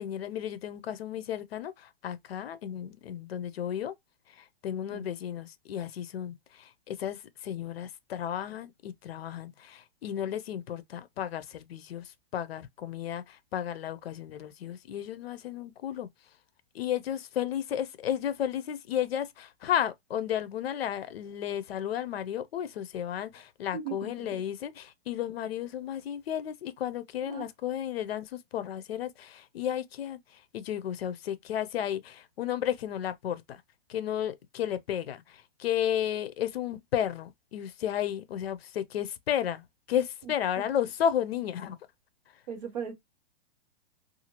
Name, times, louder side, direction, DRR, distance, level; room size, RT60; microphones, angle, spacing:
voice 1, 0.0-3.9 4.4-16.1 16.7-30.2 30.5-33.6 33.9-41.8, left 10 dB, 70° left, 0.6 m, -33 dB
voice 2, 23.7-24.4 27.2-27.5 40.2-40.7 42.5-42.9, right 7 dB, 45° right, 1.0 m, -39 dB
2.7 x 2.4 x 2.9 m
hypercardioid pair, 175°, 31 cm